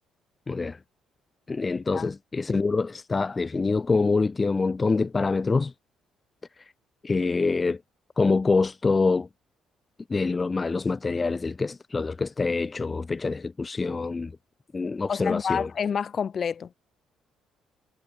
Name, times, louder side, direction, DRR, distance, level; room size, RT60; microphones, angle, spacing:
voice 1, 0.5-0.8 1.5-5.7 6.6-6.7 7.0-7.8 8.2-9.3 10.1-14.3 14.7-15.7, left 4 dB, 25° left, 0.7 m, -25 dB
voice 2, 15.1-16.7, left 7 dB, 45° left, 2.7 m, -28 dB
cardioid pair, 105°, 0 cm